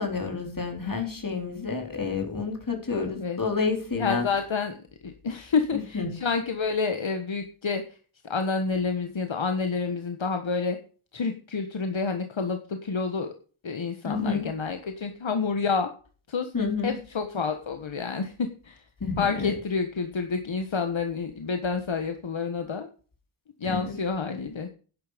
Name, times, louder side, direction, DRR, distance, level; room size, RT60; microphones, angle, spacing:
voice 1, 0.0-4.2 5.7-6.2 14.0-14.5 16.5-17.0 19.0-19.5 23.6-24.0, left 4 dB, 40° left, 3 dB, 4.4 m, -29 dB
voice 2, 2.9-3.4 4.0-4.7 5.0-7.8 8.2-10.8 11.1-13.3 13.6-15.9 16.3-16.5 16.8-18.8 19.2-22.9 23.6-24.7, left 5 dB, 70° left, 6 dB, 1.5 m, -29 dB
11.5 x 10.5 x 5.2 m, 0.39 s
wide cardioid pair, 95°, 48 cm